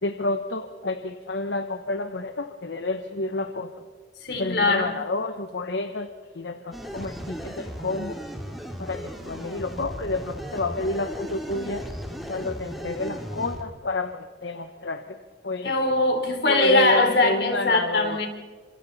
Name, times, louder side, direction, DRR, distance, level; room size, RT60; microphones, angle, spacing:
voice 1, 0.0-3.8 4.4-6.1 6.3-8.2 8.8-11.8 12.3-15.2 15.4-15.7 16.5-18.2, left 2 dB, 80° left, 8 dB, 1.0 m, -29 dB
voice 2, 4.2-4.9 15.6-18.3, left 2 dB, 65° left, 3 dB, 3.7 m, -21 dB
sound 1, 6.7-13.6, equal, ahead, 2.3 m, -36 dB
29.5 x 26.5 x 4.2 m, 1.5 s
head